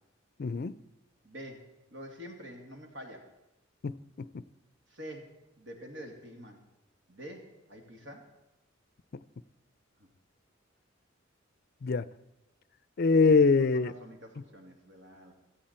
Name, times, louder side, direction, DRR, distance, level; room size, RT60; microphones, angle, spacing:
voice 1, 0.4-0.8 3.8-4.4 11.8-12.1 13.0-13.9, left 4 dB, 50° left, 0.5 m, -24 dB
voice 2, 1.2-1.6 1.9-3.3 4.9-6.6 7.1-8.3 10.0-10.1 13.7-15.3, equal, 70° right, 2.7 m, -46 dB
16.5 x 14.0 x 4.3 m
head